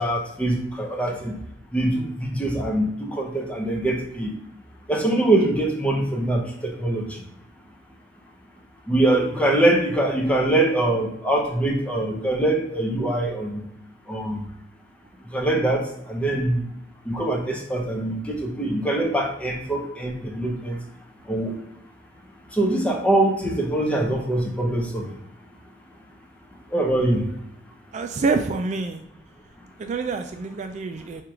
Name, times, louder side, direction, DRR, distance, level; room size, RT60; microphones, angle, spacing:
voice 1, 0.0-1.4 1.7-4.3 4.9-7.2 8.9-13.6 14.1-14.4 15.3-16.6 17.0-20.8 21.3-21.6 22.5-25.2 26.7-27.3, right 1 dB, 5° left, 0 dB, 0.8 m, -23 dB
voice 2, 27.9-29.0 29.8-31.2, right 4 dB, 40° right, 6 dB, 0.3 m, -27 dB
4.4 x 2.4 x 4.9 m, 0.76 s
head